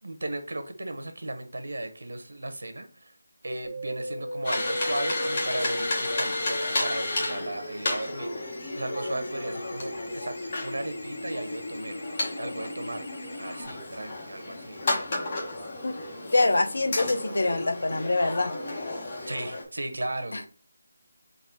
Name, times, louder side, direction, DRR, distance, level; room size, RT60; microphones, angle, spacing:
voice 1, 0.0-3.1 3.4-12.0 12.4-13.0 13.4-14.8 19.3-20.4, right 1 dB, 80° right, 0.9 m, -36 dB
sound 1, 3.6-13.6, left 1 dB, 60° left, 1.3 m, -37 dB
sound 2, 4.4-19.6, left 2 dB, 30° left, 1.1 m, -33 dB
voice 2, 16.3-18.5 20.3-20.5, left 2 dB, 80° left, 0.8 m, -25 dB
4.0 x 2.5 x 4.5 m
figure-of-eight pair, 175°, 0 cm